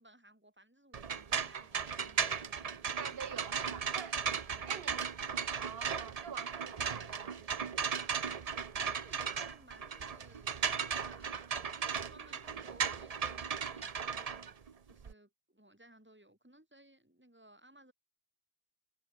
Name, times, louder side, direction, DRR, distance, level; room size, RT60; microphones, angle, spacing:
voice 1, 0.0-3.0 4.6-5.0 8.7-11.4 11.8-17.9, right 1 dB, 10° right, 3.9 m, -61 dB
sound 1, 0.9-15.1, right 6 dB, 40° right, 0.8 m, -36 dB
voice 2, 2.6-4.2 4.7-5.1 5.6-7.8, right 7 dB, 70° right, 1.2 m, -47 dB
omnidirectional pair, 1.1 m